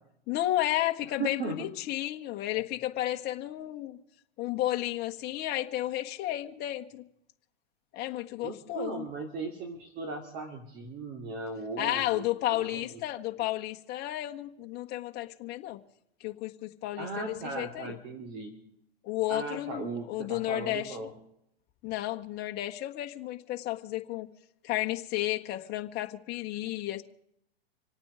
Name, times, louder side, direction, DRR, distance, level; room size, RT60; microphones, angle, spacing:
voice 1, 0.3-4.0 4.4-7.0 7.9-9.1 11.8-15.8 16.2-17.9 19.0-20.9 21.8-24.3 24.6-27.0, left 15 dB, 30° left, 5 dB, 1.4 m, -32 dB
voice 2, 1.2-1.6 8.4-12.2 12.5-13.0 17.0-18.5 19.3-21.1, right 3 dB, 35° right, 4 dB, 2.6 m, -37 dB
27.0 x 9.1 x 5.0 m, 0.75 s
hypercardioid pair, 130°, 31 cm